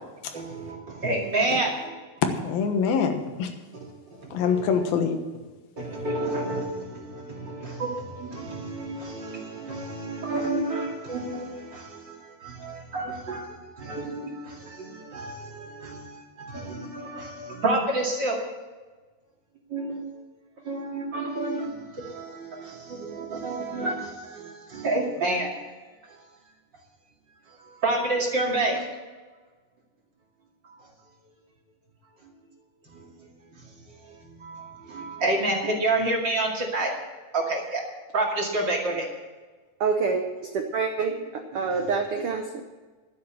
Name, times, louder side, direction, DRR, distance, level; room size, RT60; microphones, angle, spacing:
voice 1, 0.3-2.0 3.8-4.7 5.8-18.4 19.7-20.1 20.6-25.5 26.1-26.2 27.5-28.9 32.9-33.1 33.5-36.9 37.3-37.8 38.1-39.1 41.7-41.9, right 2 dB, 35° right, -1 dB, 2.5 m, -30 dB
voice 2, 2.2-3.5 4.3-5.2, left 6 dB, 85° left, 6 dB, 3.1 m, -25 dB
voice 3, 39.8-42.6, right 5 dB, 85° right, 4 dB, 1.2 m, -27 dB
12.0 x 9.5 x 7.2 m, 1.3 s
omnidirectional pair, 4.1 m